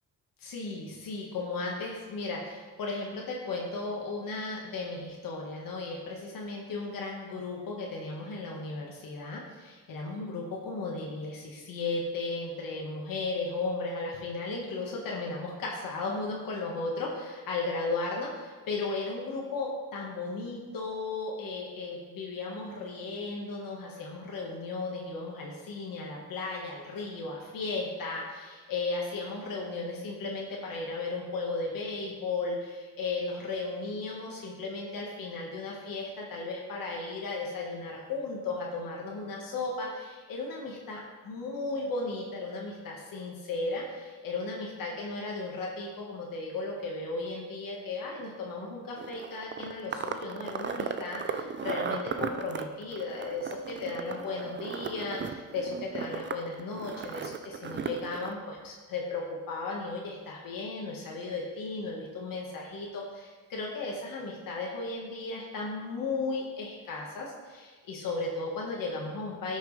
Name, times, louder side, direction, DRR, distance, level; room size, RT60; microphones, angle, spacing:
voice 1, 0.4-69.6, left 3 dB, 85° left, -2 dB, 1.6 m, -35 dB
sound 1, 49.0-58.3, right 6 dB, 35° right, 0.5 m, -36 dB
13.0 x 6.4 x 3.3 m, 1.4 s
cardioid pair, 120°, 33 cm